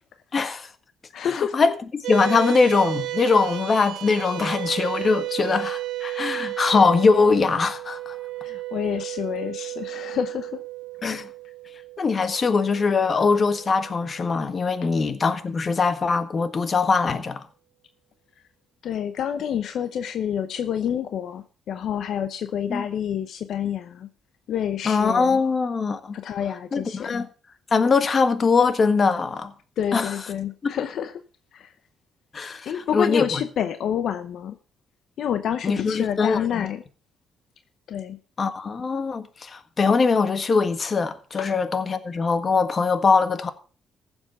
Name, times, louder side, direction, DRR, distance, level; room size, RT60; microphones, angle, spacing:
voice 1, 0.3-0.7 1.2-8.2 11.0-11.3 12.0-17.4 22.7-22.8 24.8-26.1 26.7-27.3 27.7-29.5 29.9-30.1 32.3-33.4 35.6-36.7 38.4-43.5, left 4 dB, 40° left, 1.5 m, -22 dB
voice 2, 1.1-1.7 2.2-2.3 8.4-10.6 18.8-24.1 24.5-25.4 26.1-27.2 29.8-31.1 31.5-31.7 32.7-34.6 35.2-36.8 37.9-38.2, left 9 dB, 70° left, 0.8 m, -28 dB
sound 1, 2.0-14.7, right 17 dB, 85° right, 1.5 m, -33 dB
15.5 x 7.2 x 5.5 m
cardioid pair, 90°, 0 cm